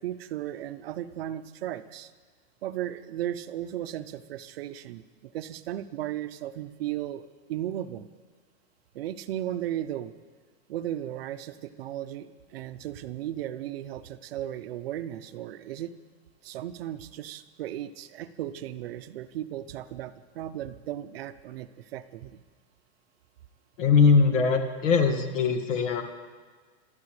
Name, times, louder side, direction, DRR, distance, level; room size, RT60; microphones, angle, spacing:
voice 1, 0.0-2.1 2.6-8.1 8.9-10.1 10.7-15.9 16.4-22.4, right 12 dB, 50° right, 12 dB, 0.6 m, -35 dB
voice 2, 23.8-26.0, left 5 dB, 80° left, 6 dB, 2.0 m, -21 dB
25.0 x 12.5 x 3.3 m, 1.5 s
supercardioid pair, 180°, 37 cm